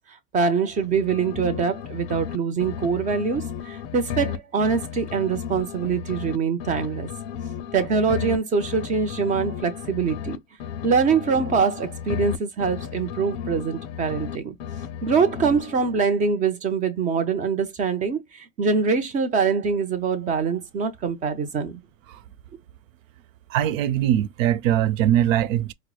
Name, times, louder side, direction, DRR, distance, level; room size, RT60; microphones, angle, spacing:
voice 1, 0.3-7.1 7.7-10.4 10.8-14.6 15.0-21.8, right 5 dB, 20° right, 0.5 m, -24 dB
sound 1, 0.7-2.4 2.6-6.4 6.6-10.4 10.6-14.4 14.6-16.0, left 8 dB, 45° left, 0.5 m, -34 dB
voice 2, 23.5-25.7, right 11 dB, 80° right, 0.6 m, -21 dB
4.5 x 2.0 x 2.2 m
supercardioid pair, 145°, 39 cm